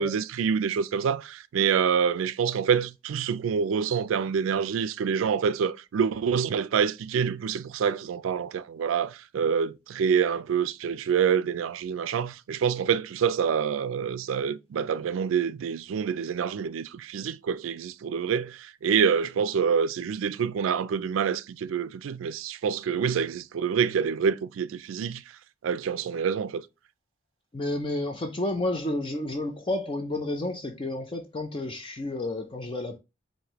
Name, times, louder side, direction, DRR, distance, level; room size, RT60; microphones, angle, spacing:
voice 1, 0.0-25.2 25.6-26.7, right 7 dB, 90° right, 0.3 m, -26 dB
voice 2, 27.5-33.0, left 1 dB, 25° left, 0.5 m, -31 dB
4.9 x 2.6 x 2.9 m
head